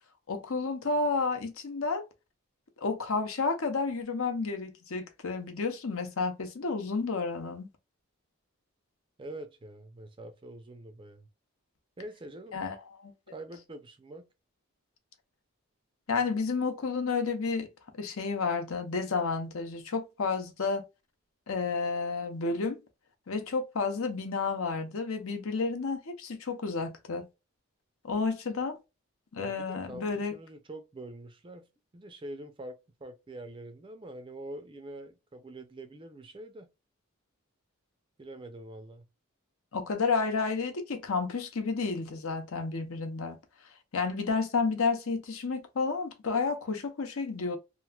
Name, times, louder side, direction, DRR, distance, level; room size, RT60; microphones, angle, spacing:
voice 1, 0.3-2.0 2.8-7.7 12.5-13.1 16.1-17.7 18.0-20.8 21.5-22.8 23.3-27.3 28.0-28.8 29.3-30.4 39.7-43.4 43.9-47.6, left 4 dB, 75° left, 0.7 m, -31 dB
voice 2, 9.2-11.3 12.0-12.6 13.3-14.2 29.4-31.7 31.9-36.7 38.2-39.0, right 1 dB, 20° right, 0.4 m, -45 dB
3.0 x 2.5 x 2.2 m
head